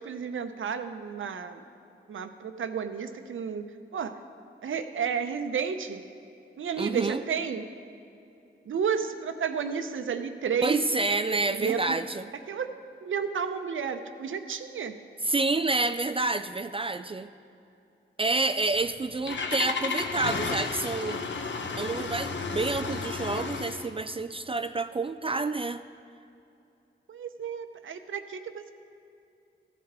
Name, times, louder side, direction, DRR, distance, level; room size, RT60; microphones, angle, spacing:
voice 1, 0.0-1.6 2.1-4.2 4.6-6.0 6.6-7.7 8.6-10.8 11.3-11.8 12.5-15.0 27.1-28.7, right 7 dB, 70° right, 8 dB, 0.7 m, -32 dB
voice 2, 6.8-7.2 10.6-12.3 15.2-17.3 18.2-21.2 21.8-25.8, right 3 dB, 25° right, 11 dB, 0.4 m, -28 dB
Engine starting, 18.7-23.9, left 4 dB, 60° left, 0.9 m, -33 dB
14.5 x 10.5 x 3.7 m, 2.7 s
cardioid pair, 55°, 21 cm